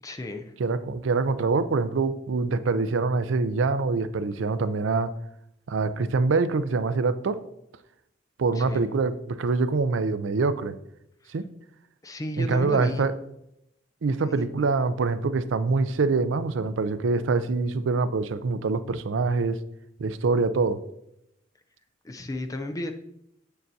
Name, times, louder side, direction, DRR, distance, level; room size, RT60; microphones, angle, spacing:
voice 1, 0.0-0.5 8.6-8.8 12.0-13.1 14.2-14.5 22.0-22.9, left 1 dB, 20° left, 6 dB, 0.5 m, -33 dB
voice 2, 0.6-5.1 5.7-7.4 8.4-10.8 11.3-11.5 12.4-13.1 14.0-19.6 20.0-20.8, right 4 dB, 80° right, 13 dB, 0.4 m, -25 dB
7.5 x 6.7 x 2.7 m, 0.80 s
head